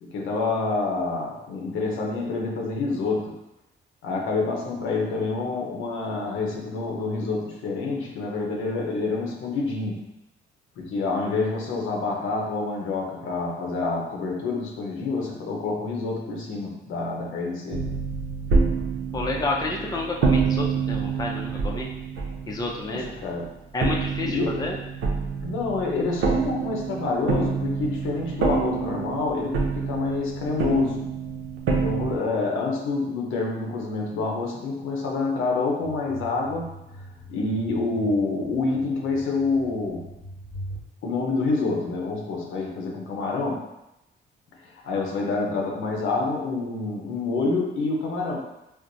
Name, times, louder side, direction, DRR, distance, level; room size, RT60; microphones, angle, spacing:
voice 1, 0.0-3.4 4.0-10.1 10.8-18.0 22.8-23.5 24.2-24.7 25.4-31.1 31.7-36.7 37.3-40.0 41.0-43.7 44.6-48.4, left 3 dB, 85° left, 0 dB, 0.8 m, -27 dB
sound 1, 17.7-23.4 23.8-32.2, right 5 dB, 85° right, 0.6 m, -27 dB
voice 2, 19.1-21.9 22.5-23.1 23.7-24.8, left 2 dB, 20° left, -1 dB, 0.5 m, -29 dB
sound 2, 35.8-40.8, equal, ahead, 1.1 m, -42 dB
4.4 x 2.1 x 2.6 m, 0.89 s
cardioid pair, 90°, 20 cm